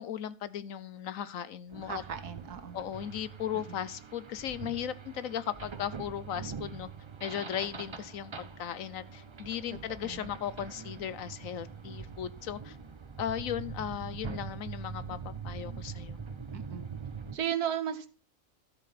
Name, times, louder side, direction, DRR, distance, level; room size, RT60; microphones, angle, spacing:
voice 1, 0.0-2.0 2.7-6.9 7.2-12.8 13.2-16.2, left 10 dB, 65° left, 1.1 m, -37 dB
sound 1, 1.7-17.4, right 6 dB, 40° right, 0.4 m, -43 dB
voice 2, 1.8-2.8 3.5-3.8 10.0-10.3 16.5-17.0 17.3-18.1, right 9 dB, 85° right, 1.7 m, -35 dB
13.5 x 7.5 x 4.1 m
omnidirectional pair, 1.6 m